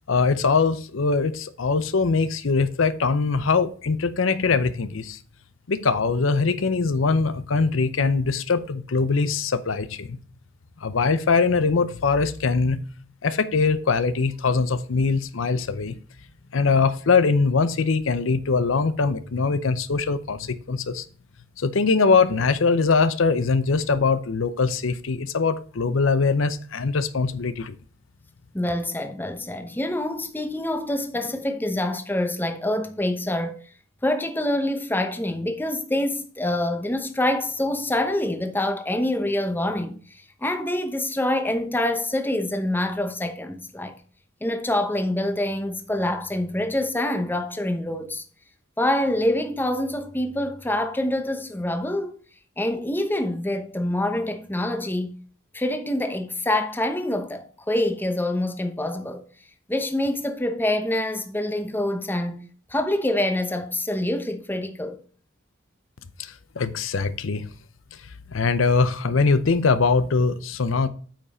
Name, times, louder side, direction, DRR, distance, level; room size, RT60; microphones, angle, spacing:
voice 1, 0.1-5.2 5.7-10.2 10.8-12.8 13.2-15.9 16.5-21.0 21.6-27.7 66.2-67.5 68.3-70.9, left 4 dB, 75° left, 0.7 m, -22 dB
voice 2, 28.5-33.6 34.0-40.0 40.4-44.0 44.4-48.2 48.8-52.1 52.6-55.2 55.5-59.2 59.7-62.4 62.7-65.0, left 1 dB, 10° left, 0.9 m, -26 dB
8.7 x 5.6 x 4.2 m
head